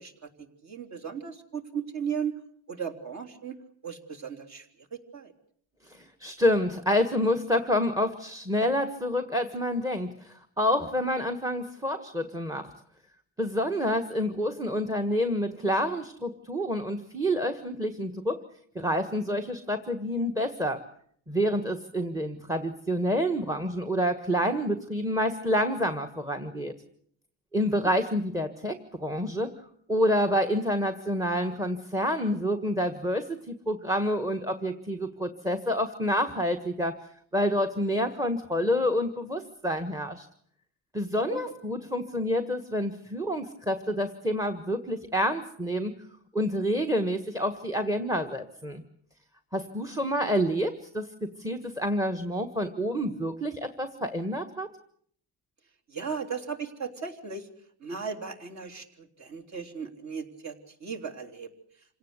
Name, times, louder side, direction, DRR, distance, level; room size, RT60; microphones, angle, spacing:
voice 1, 0.0-2.4 2.7-3.6 3.8-5.3 13.7-14.0 27.8-27.9 41.2-41.5 55.9-57.5 57.8-61.5, right 6 dB, 40° right, 2 dB, 3.5 m, -36 dB
voice 2, 5.8-12.7 13.4-18.4 18.7-20.8 21.3-26.7 27.5-29.5 29.9-36.9 37.3-40.3 40.9-45.9 46.3-48.8 49.5-51.1 51.4-54.7, equal, 10° right, 9 dB, 1.5 m, -28 dB
27.5 x 17.5 x 8.2 m, 0.64 s
cardioid pair, 130°, 43 cm